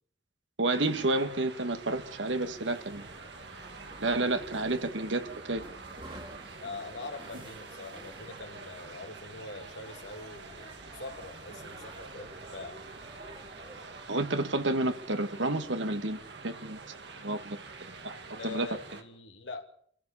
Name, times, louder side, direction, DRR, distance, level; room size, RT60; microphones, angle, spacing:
voice 1, 0.6-3.1 4.0-5.6 14.1-16.8 17.2-18.7, right 2 dB, 85° right, 8 dB, 1.8 m, -30 dB
sound 1, 0.7-19.0, right 4 dB, 65° right, 2.3 m, -47 dB
sound 2, 2.3-13.8, right 1 dB, 25° right, 2.8 m, -51 dB
voice 2, 6.6-12.8 18.4-19.6, left 3 dB, 75° left, 4 dB, 2.7 m, -43 dB
27.5 x 15.0 x 7.0 m, 0.63 s
head